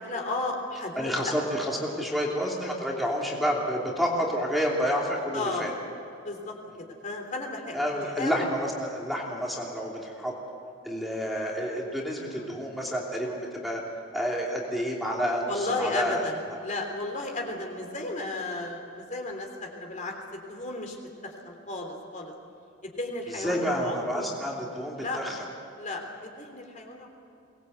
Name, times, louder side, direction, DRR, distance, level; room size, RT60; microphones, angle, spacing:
voice 1, 0.1-1.3 5.3-5.7 6.2-7.8 8.2-8.4 12.3-12.5 15.5-21.0 21.2-22.3 22.8-24.3 25.0-25.2 25.8-27.1, left 2 dB, 40° left, 2 dB, 3.3 m, -34 dB
voice 2, 1.0-5.7 7.7-10.3 10.8-13.8 14.1-16.3 23.3-25.4, equal, ahead, -2 dB, 2.9 m, -29 dB
23.5 x 20.0 x 8.1 m, 2.8 s
head